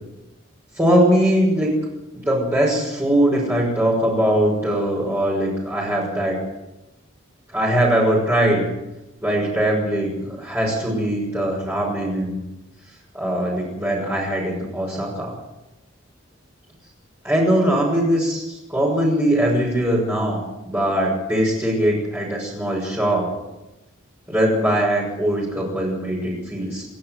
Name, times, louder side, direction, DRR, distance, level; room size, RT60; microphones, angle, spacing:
voice 1, 0.8-1.7 2.2-6.4 7.5-8.7 9.2-12.4 13.1-15.3 17.2-23.3 24.3-26.8, right 1 dB, 10° right, -5 dB, 6.3 m, -21 dB
28.5 x 12.0 x 8.1 m, 0.97 s
head